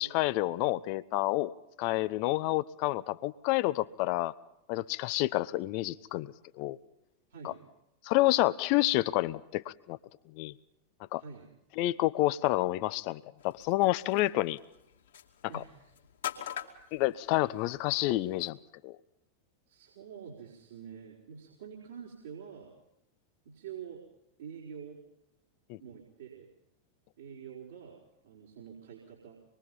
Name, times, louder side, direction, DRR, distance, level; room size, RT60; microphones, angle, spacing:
voice 1, 0.0-1.5 1.8-4.3 4.7-6.8 8.0-10.0 10.3-10.5 11.1-11.2 11.8-14.6 15.5-15.6 16.9-18.6 18.8-19.0 25.7-25.8, left 18 dB, 45° left, 0.9 m, -29 dB
voice 2, 7.3-7.6 11.2-11.5 15.5-15.9 16.8-17.0 19.7-22.7 23.4-24.0 24.4-25.0 25.8-26.5 27.2-29.4, right 7 dB, 60° right, 4.7 m, -47 dB
sound 1, 13.4-18.5, left 10 dB, 60° left, 2.6 m, -45 dB
26.0 x 22.5 x 5.5 m
figure-of-eight pair, 90°, 0 cm